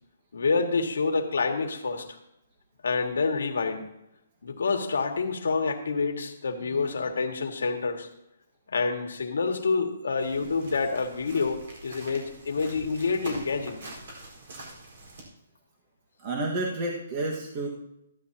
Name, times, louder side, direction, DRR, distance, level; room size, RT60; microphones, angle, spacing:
voice 1, 0.3-2.1 2.8-3.9 4.4-8.1 8.7-13.8, left 4 dB, 85° left, 4 dB, 1.8 m, -27 dB
sound 1, 10.2-15.2, right 2 dB, 55° right, 4.4 m, -44 dB
voice 2, 16.2-17.7, right 2 dB, 30° right, -2 dB, 1.6 m, -31 dB
14.5 x 11.5 x 2.9 m, 0.81 s
hypercardioid pair, 165°, 0 cm